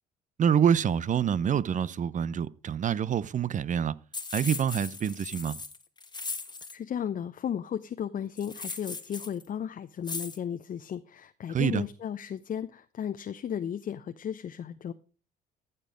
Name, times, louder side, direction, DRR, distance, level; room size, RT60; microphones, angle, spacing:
voice 1, 0.4-4.0 4.3-5.6 11.5-11.8, right 8 dB, 40° right, 0.7 m, -26 dB
sound 1, 4.1-6.8 8.4-9.4 10.0-10.4, left 4 dB, 20° left, 1.4 m, -38 dB
voice 2, 6.7-14.9, left 9 dB, 45° left, 0.7 m, -35 dB
14.0 x 6.9 x 5.1 m
hypercardioid pair, 60°, 20 cm